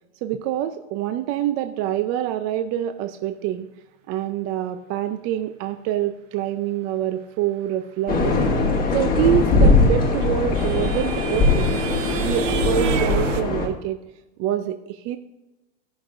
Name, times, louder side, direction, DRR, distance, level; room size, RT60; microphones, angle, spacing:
voice 1, 0.2-3.7 4.1-8.4 8.9-11.8 12.2-14.0 14.4-15.2, right 11 dB, 40° right, 9 dB, 0.5 m, -26 dB
sound 1, 8.1-13.7, left 3 dB, 25° left, 1.8 m, -20 dB
sound 2, 9.6-13.4, right 8 dB, 80° right, 0.8 m, -30 dB
15.5 x 6.0 x 2.6 m, 1.0 s
hypercardioid pair, 115°, 37 cm